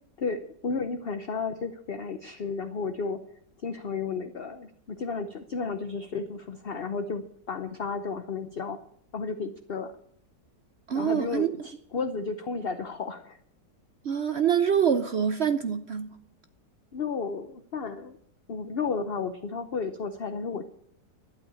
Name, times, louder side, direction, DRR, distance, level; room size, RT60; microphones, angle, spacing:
voice 1, 0.2-3.2 3.6-8.8 9.1-9.9 10.9-13.4 16.9-18.2 18.5-20.6, left 4 dB, 45° left, 0.8 m, -33 dB
voice 2, 10.9-11.5 14.0-16.1, right 8 dB, 55° right, 0.7 m, -25 dB
12.0 x 8.5 x 8.6 m
omnidirectional pair, 1.8 m